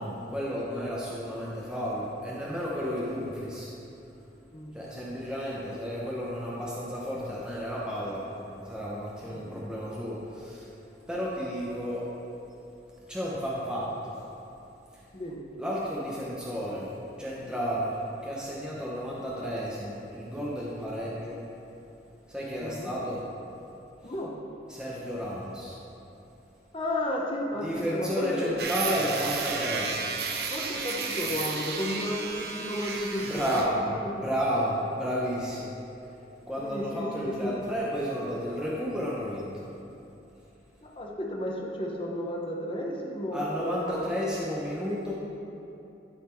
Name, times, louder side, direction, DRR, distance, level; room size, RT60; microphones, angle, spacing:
voice 1, 0.0-3.7 4.7-10.7 11.1-12.0 13.1-14.2 14.9-15.0 15.6-16.9 17.2-21.4 22.3-23.2 24.0-24.1 24.7-25.8 27.6-30.1 33.3-33.8 34.1-35.7 36.5-39.5 43.3-45.1, equal, 5° right, -6 dB, 0.7 m, -32 dB
voice 2, 15.1-15.5 22.6-22.9 24.0-24.3 26.7-28.5 30.5-34.3 36.6-37.6 40.8-44.1, left 1 dB, 30° left, -1 dB, 0.8 m, -33 dB
sound 1, 28.6-33.7, right 4 dB, 55° right, 0.7 m, -33 dB
11.5 x 4.1 x 4.5 m, 2.8 s
head